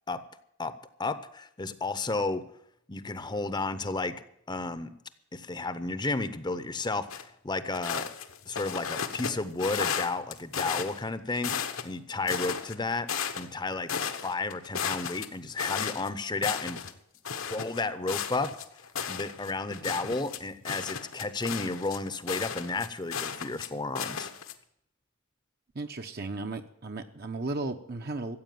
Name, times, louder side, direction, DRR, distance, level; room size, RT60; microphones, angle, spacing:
voice 1, 1.0-2.4 2.9-4.2 4.5-4.9 5.3-8.1 8.5-11.5 11.8-13.1 13.4-16.8 17.5-18.5 19.1-24.3, left 3 dB, 20° left, 13 dB, 0.7 m, -32 dB
sound 1, 7.1-7.2 7.7-9.3 9.6-11.0 11.4-11.9 12.3-13.6 13.9-16.1 16.4-16.9 17.3-23.7 24.0-24.5, left 7 dB, 70° left, 1.2 m, -34 dB
voice 2, 25.7-28.4, right 2 dB, 45° right, 6 dB, 0.8 m, -35 dB
14.5 x 8.3 x 9.3 m, 0.74 s
head